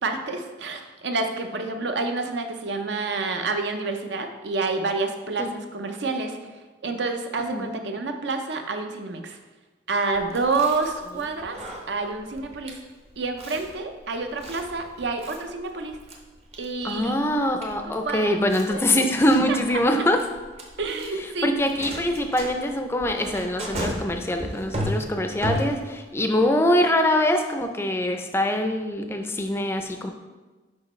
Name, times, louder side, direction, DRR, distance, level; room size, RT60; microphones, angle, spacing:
voice 1, 0.0-9.4 9.9-12.8 13.2-16.0 16.6-17.2 17.8-18.4 18.7-18.8 19.5-19.8 20.8-21.5, right 3 dB, 70° right, 5 dB, 0.6 m, -28 dB
voice 2, 7.4-7.7 16.8-20.2 21.4-30.1, left 1 dB, 15° left, 5 dB, 0.4 m, -23 dB
Chewing mastication, 10.2-26.1, equal, 35° right, 0.7 m, -36 dB
6.4 x 5.2 x 3.1 m, 1.3 s
head